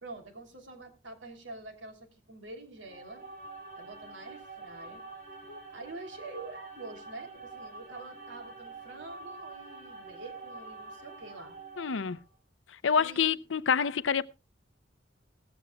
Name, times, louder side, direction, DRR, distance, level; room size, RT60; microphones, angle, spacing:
voice 1, 0.0-3.2 3.8-5.0 5.7-11.6 13.0-13.4, right 2 dB, 70° right, 3.1 m, -46 dB
sound 1, 2.8-12.3, right 3 dB, 55° right, 4.6 m, -46 dB
voice 2, 11.8-12.2 12.8-14.2, left 6 dB, 80° left, 0.6 m, -27 dB
18.0 x 14.5 x 2.3 m
head